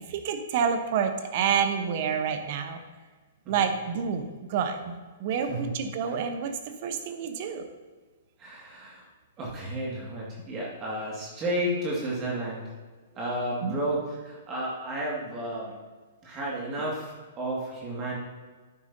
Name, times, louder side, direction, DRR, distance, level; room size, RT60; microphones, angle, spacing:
voice 1, 0.0-2.8 3.5-6.5 6.8-7.7 13.6-13.7, right 7 dB, 50° right, 7 dB, 1.0 m, -28 dB
voice 2, 8.4-9.0 9.4-12.7 13.1-15.8 16.2-18.2, right 1 dB, 30° right, -4 dB, 2.2 m, -32 dB
11.0 x 9.4 x 2.8 m, 1.4 s
hypercardioid pair, 115°, 0 cm